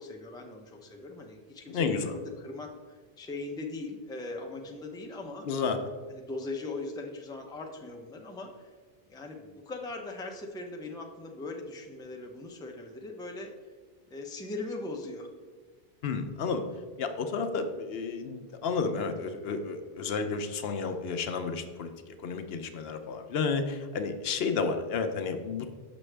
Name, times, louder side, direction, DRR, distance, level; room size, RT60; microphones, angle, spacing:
voice 1, 0.0-5.5 6.1-8.7 9.1-13.5 14.1-15.3, left 2 dB, 5° left, 2 dB, 0.5 m, -40 dB
voice 2, 1.7-2.1 5.4-5.8 16.0-16.6 17.0-25.7, left 5 dB, 75° left, 7 dB, 0.8 m, -31 dB
6.2 x 6.0 x 3.3 m, 1.5 s
omnidirectional pair, 1.1 m